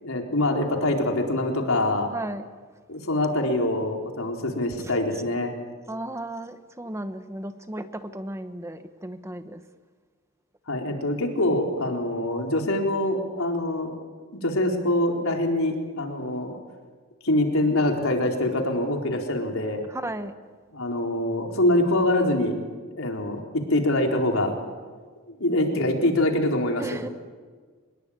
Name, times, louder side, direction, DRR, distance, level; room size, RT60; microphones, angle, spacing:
voice 1, 0.0-2.1 2.9-5.5 10.7-13.9 14.3-16.6 17.2-19.8 20.7-22.6 23.0-24.5 25.3-27.0, left 1 dB, 80° left, 2 dB, 4.2 m, -24 dB
voice 2, 2.1-2.4 5.9-9.6 19.9-20.3 26.8-27.1, right 1 dB, 15° right, 9 dB, 1.0 m, -34 dB
24.5 x 21.5 x 8.8 m, 1.5 s
head